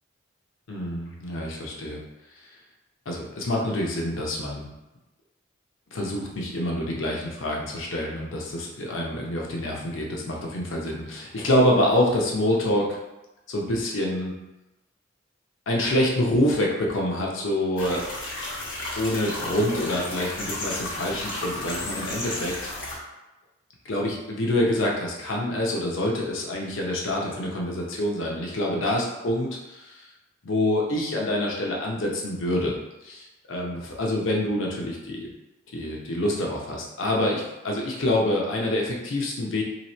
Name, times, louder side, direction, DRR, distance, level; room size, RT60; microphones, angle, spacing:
voice 1, 0.7-2.0 3.1-4.7 5.9-12.9 13.5-14.3 15.7-18.0 19.0-22.5 23.8-30.1 30.4-32.8 33.0-35.3 35.7-39.6, left 1 dB, 85° left, -2 dB, 0.7 m, -26 dB
sound 1, 17.8-23.0, left 2 dB, 70° left, 1.2 m, -33 dB
2.9 x 2.8 x 4.2 m, 1.0 s
head